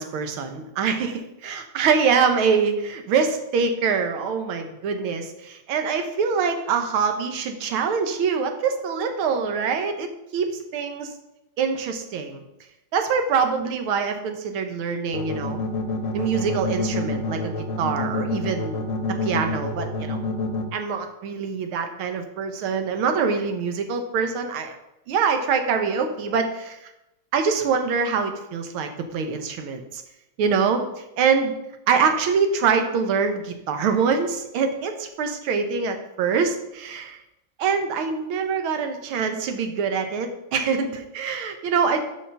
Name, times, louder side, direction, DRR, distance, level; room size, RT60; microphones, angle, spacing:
voice 1, 0.0-10.1 10.3-11.1 11.6-12.4 12.9-15.6 16.1-18.8 19.2-20.2 20.7-24.7 25.1-26.9 27.3-30.0 30.4-31.5 31.9-37.2 37.6-42.0, right 5 dB, 80° right, 6 dB, 1.7 m, -24 dB
sound 1, 15.1-20.6, left 3 dB, 85° left, 1.8 m, -27 dB
6.7 x 5.5 x 5.6 m, 0.90 s
omnidirectional pair, 2.3 m